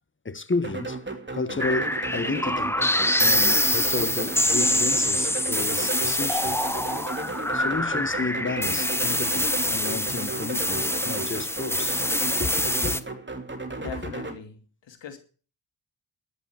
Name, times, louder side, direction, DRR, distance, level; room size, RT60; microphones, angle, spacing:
voice 1, 0.2-1.0 1.3-6.5 7.5-12.0 12.4-13.0, left 3 dB, 25° left, 1.2 m, -32 dB
sound 1, 0.6-14.4, right 3 dB, 25° right, 3.0 m, -34 dB
sound 2, 1.6-13.0, left 1 dB, 5° left, 1.1 m, -25 dB
voice 2, 13.8-15.2, left 8 dB, 90° left, 2.7 m, -41 dB
12.0 x 8.5 x 7.8 m
cardioid pair, 50°, 43 cm